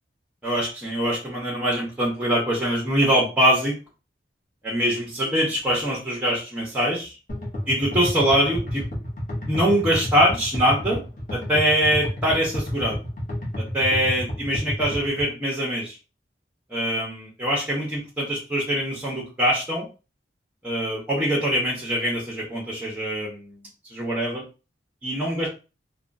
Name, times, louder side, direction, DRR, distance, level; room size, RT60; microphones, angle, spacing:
voice 1, 0.4-3.8 4.6-7.1 7.7-8.8 9.4-11.0 11.3-13.0 13.7-16.0 16.7-19.9 20.6-23.6 23.9-24.4 25.0-25.5, equal, 10° right, -4 dB, 0.7 m, -23 dB
sound 1, 7.3-15.3, left 1 dB, 45° left, 0.9 m, -30 dB
2.9 x 2.2 x 2.5 m, 0.31 s
head